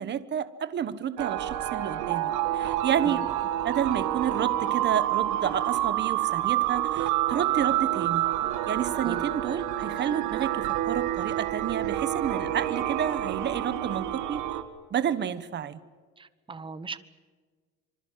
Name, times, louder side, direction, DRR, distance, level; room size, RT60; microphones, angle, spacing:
voice 1, 0.0-3.3 3.6-8.3 8.7-14.4 14.9-15.8, right 9 dB, 40° right, 13 dB, 1.3 m, -30 dB
sound 1, 1.2-14.6, right 13 dB, 85° right, 2.3 m, -28 dB
voice 2, 16.2-17.0, right 4 dB, 15° right, 14 dB, 1.1 m, -39 dB
26.0 x 25.0 x 7.5 m, 1.5 s
cardioid pair, 150°, 29 cm